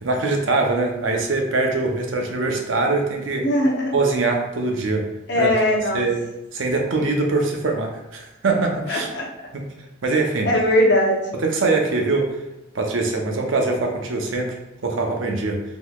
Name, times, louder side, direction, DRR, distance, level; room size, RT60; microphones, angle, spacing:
voice 1, 0.0-3.5 3.9-5.1 5.4-5.5 5.9-6.2 6.5-9.1 9.5-9.7 10.0-10.5 11.3-12.3 12.7-15.6, right 3 dB, 85° right, 2 dB, 0.6 m, -23 dB
voice 2, 3.4-3.9 5.3-6.0 8.9-9.3 10.4-11.2, left 1 dB, 65° left, -1 dB, 0.8 m, -19 dB
3.8 x 2.9 x 2.3 m, 0.92 s
head